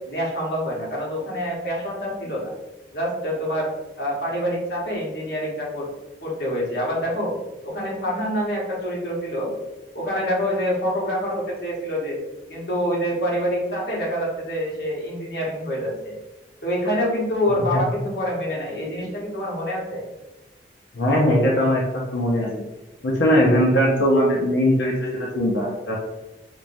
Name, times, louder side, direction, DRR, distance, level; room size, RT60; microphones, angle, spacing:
voice 1, 0.1-2.5 2.9-3.7 4.0-5.9 6.2-7.3 7.6-9.5 9.9-12.2 12.5-16.1 16.6-20.0, equal, 60° left, -4 dB, 1.1 m, -26 dB
voice 2, 17.5-17.8 20.9-21.8 22.1-22.5 23.0-26.0, equal, 80° left, -2 dB, 0.6 m, -20 dB
4.6 x 2.2 x 2.6 m, 1.0 s
head